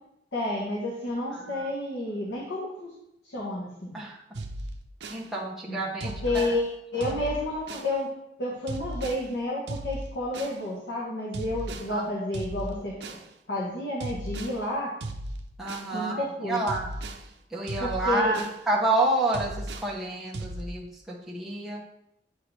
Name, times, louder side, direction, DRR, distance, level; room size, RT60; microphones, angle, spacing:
voice 1, 0.3-2.9 3.2-4.0 5.7-5.8 6.0-8.1 8.4-13.2 13.5-14.9 15.9-16.6 17.8-18.4, left 1 dB, 75° left, -5 dB, 1.4 m, -30 dB
voice 2, 1.3-1.7 3.9-4.2 5.1-6.5 7.1-7.2 11.9-12.0 15.6-17.0 17.5-21.8, right 2 dB, ahead, -6 dB, 1.2 m, -29 dB
sound 1, 4.3-5.2 6.0-6.6 7.0-7.9 8.7-9.2 9.7-10.6 11.3-11.9 12.3-13.3 14.0-14.6 15.0-15.9 16.7-17.2 17.7-18.6 19.3-19.9 20.3-20.6, right 2 dB, 70° right, 0.6 m, -36 dB
8.6 x 4.7 x 3.4 m, 0.82 s
head